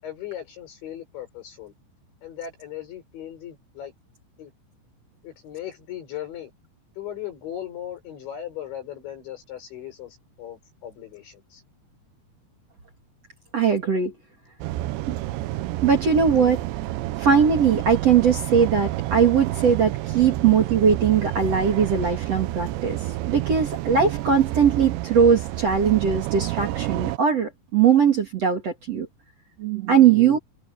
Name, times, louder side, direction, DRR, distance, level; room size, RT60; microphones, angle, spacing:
voice 1, 0.0-1.7 2.2-3.9 4.4-4.5 5.2-6.5 7.0-11.6 20.2-20.3 22.0-22.2, left 11 dB, 75° left, 7.8 m, -38 dB
voice 2, 13.5-14.1 15.1-15.2 15.8-16.6 17.2-23.0 23.3-29.1 29.6-30.4, right 7 dB, 45° right, 2.6 m, -20 dB
sound 1, 14.6-27.2, right 16 dB, 80° right, 2.8 m, -29 dB
omnidirectional pair, 5.4 m